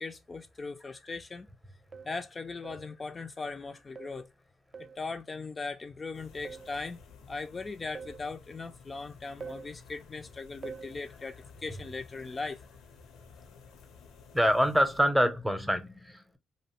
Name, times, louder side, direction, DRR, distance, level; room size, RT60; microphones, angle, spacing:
voice 1, 0.0-1.5 2.0-4.3 4.8-7.0 7.3-12.7, left 3 dB, 30° left, 0.4 m, -39 dB
sound 1, 0.9-1.0 1.9-2.2 2.6-2.9 4.0-4.3 4.7-5.1 6.5-6.8 8.0-8.3 9.4-9.7 10.6-11.0, right 5 dB, 45° right, 0.4 m, -44 dB
sound 2, 6.1-15.0, left 5 dB, 85° left, 0.6 m, -54 dB
voice 2, 14.3-16.4, equal, 5° right, 0.7 m, -26 dB
2.6 x 2.0 x 2.9 m
supercardioid pair, 65°, 0 cm